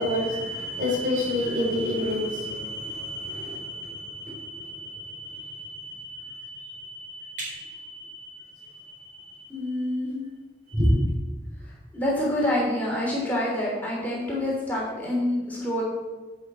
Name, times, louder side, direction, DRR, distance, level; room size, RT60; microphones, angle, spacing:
voice 1, 0.0-9.4 10.7-11.0, left 1 dB, 50° right, -4 dB, 4.1 m, -30 dB
voice 2, 9.5-10.3 11.6-15.8, left 1 dB, 10° left, -6 dB, 3.3 m, -27 dB
15.5 x 6.5 x 4.2 m, 1.3 s
head